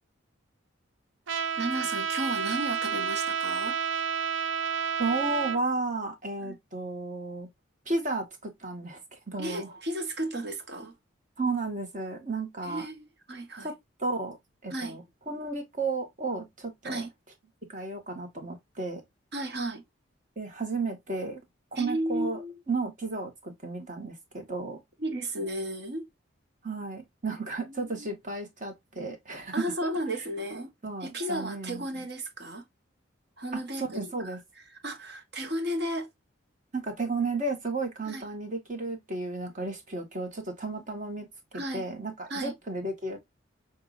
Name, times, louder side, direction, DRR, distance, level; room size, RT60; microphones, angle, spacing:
Trumpet, 1.3-5.6, right 7 dB, 75° right, 0.7 m, -30 dB
voice 1, 1.6-3.8 6.4-6.6 9.4-10.9 12.6-13.7 14.7-15.0 16.8-17.1 19.3-19.8 21.7-22.5 25.0-26.1 27.6-28.1 29.5-30.7 31.0-32.6 33.4-34.4 34.7-36.1 38.0-38.3 41.5-41.9 42.3-42.5, right 1 dB, 55° right, 1.4 m, -34 dB
voice 2, 5.0-7.5 7.8-9.0 9.3-9.7 11.4-12.8 13.6-14.4 14.6-17.0 17.6-19.0 20.4-21.4 21.7-22.4 22.7-24.8 26.6-29.6 30.8-31.8 33.5-34.4 36.7-43.2, right 3 dB, 40° right, 1.6 m, -33 dB
6.7 x 2.7 x 2.6 m
head